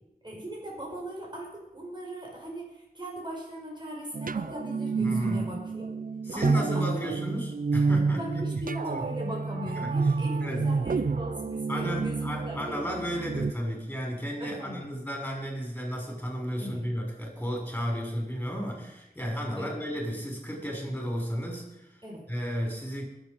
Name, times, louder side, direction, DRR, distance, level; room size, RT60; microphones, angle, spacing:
voice 1, 0.2-5.9 6.3-7.1 8.1-13.0 14.4-14.8 16.6-16.9 19.5-19.7 22.0-22.2, equal, 30° right, -2 dB, 4.9 m, -39 dB
sound 1, 4.1-13.5, right 4 dB, 65° right, 0.5 m, -29 dB
voice 2, 5.0-5.5 6.2-8.4 8.9-9.0 9.7-9.9 10.4-10.7 11.7-21.9 22.3-23.0, equal, 10° left, -1 dB, 6.3 m, -33 dB
21.0 x 8.2 x 5.4 m, 0.87 s
wide cardioid pair, 55°, 16 cm